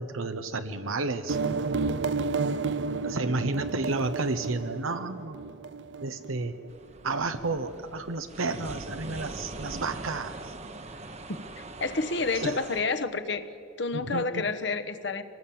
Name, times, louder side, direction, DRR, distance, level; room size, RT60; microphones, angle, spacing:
voice 1, 0.0-1.4 3.0-5.4 6.0-6.5 7.0-10.5 12.4-12.6 13.9-14.4, right 3 dB, 90° right, 9 dB, 0.9 m, -31 dB
sound 1, 1.3-6.7, right 4 dB, 60° right, 0.5 m, -31 dB
sound 2, 6.7-12.8, right 2 dB, 30° right, 1.0 m, -42 dB
voice 2, 11.8-13.4 13.8-15.2, left 3 dB, 60° left, 8 dB, 1.1 m, -29 dB
25.0 x 18.5 x 8.7 m, 2.8 s
head